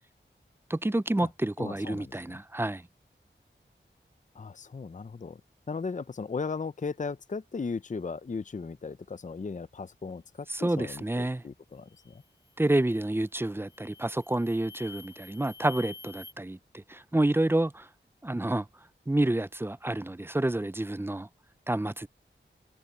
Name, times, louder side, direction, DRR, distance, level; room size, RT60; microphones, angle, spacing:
voice 1, 0.7-2.8 10.5-11.4 12.6-17.9 18.2-18.7 19.1-21.3 21.7-22.1, right 1 dB, 10° right, 0.4 m, -29 dB
voice 2, 1.6-2.1 4.4-5.4 5.7-10.2 10.6-12.1, left 4 dB, 40° left, 0.5 m, -36 dB
sound 1, 11.9-12.2 12.7-13.2 13.7-16.3, left 4 dB, 60° left, 1.1 m, -49 dB
wide cardioid pair, 70°, 20 cm